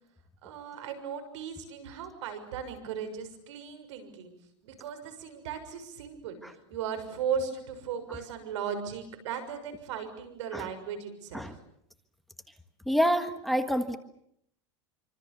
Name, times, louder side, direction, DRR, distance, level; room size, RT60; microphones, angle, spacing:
voice 1, 0.4-4.3 4.6-11.6, right 7 dB, 80° right, 9 dB, 6.6 m, -37 dB
voice 2, 12.9-14.0, equal, ahead, 8 dB, 1.6 m, -27 dB
27.0 x 25.5 x 7.0 m, 0.72 s
supercardioid pair, 140°, 15 cm